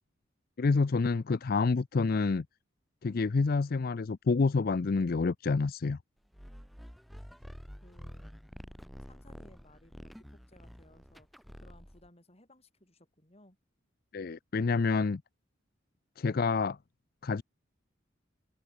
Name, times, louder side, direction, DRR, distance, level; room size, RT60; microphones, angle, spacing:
voice 1, 0.6-2.5 3.0-6.0 14.1-15.2 16.2-16.8 17.2-17.4, left 4 dB, 50° left, 0.5 m, -28 dB
sound 1, 6.3-12.1, equal, ahead, 1.5 m, -49 dB
voice 2, 7.8-8.3 9.1-13.6, left 1 dB, 30° left, 6.6 m, -61 dB
head